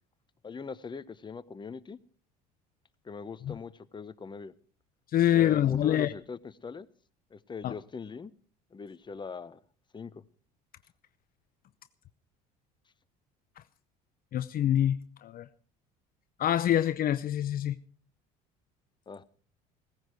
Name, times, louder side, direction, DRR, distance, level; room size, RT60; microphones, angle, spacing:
voice 1, 0.4-2.0 3.0-4.5 5.3-6.9 7.3-8.3 8.7-9.6 9.9-10.2 19.1-19.2, left 5 dB, 25° left, 1.0 m, -41 dB
voice 2, 5.1-6.1 7.6-7.7 14.3-15.5 16.4-17.8, left 11 dB, 45° left, 0.7 m, -26 dB
17.0 x 15.5 x 4.5 m
hypercardioid pair, 75°, 20 cm